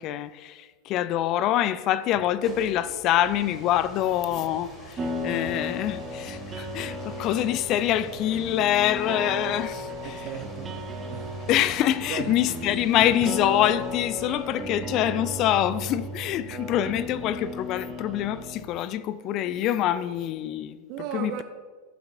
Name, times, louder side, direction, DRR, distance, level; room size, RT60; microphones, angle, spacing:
voice 1, 0.0-10.3 11.5-20.8 21.1-21.4, left 12 dB, 35° left, 0.4 m, -25 dB
sound 1, 2.1-18.9, equal, 20° left, 2.4 m, -47 dB
sound 2, 5.0-18.6, left 1 dB, 20° right, 1.0 m, -35 dB
voice 2, 10.0-11.4 12.1-12.4 20.9-21.4, right 9 dB, 40° right, 0.6 m, -36 dB
15.0 x 7.6 x 2.6 m
figure-of-eight pair, 90°, 0 cm